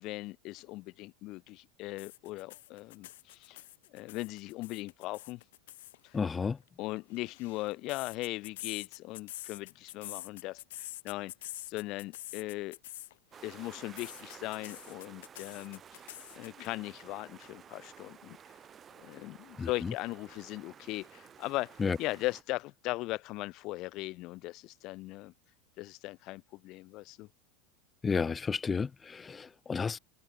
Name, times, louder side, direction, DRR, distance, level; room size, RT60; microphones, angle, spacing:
voice 1, 0.0-3.6 3.9-5.4 6.0-6.2 6.8-11.3 11.7-12.8 13.4-16.0 16.3-18.4 19.0-25.3 25.8-27.3, left 20 dB, 55° left, 1.7 m, -39 dB
sound 1, 2.0-6.0 7.0-13.1 13.4-16.7, left 16 dB, 75° left, 1.7 m, -46 dB
voice 2, 6.1-6.6 19.6-19.9 21.8-22.0 28.0-30.0, left 5 dB, 20° left, 0.3 m, -32 dB
sound 2, 13.3-22.4, right 8 dB, 30° right, 6.1 m, -53 dB
hypercardioid pair, 100°, 0 cm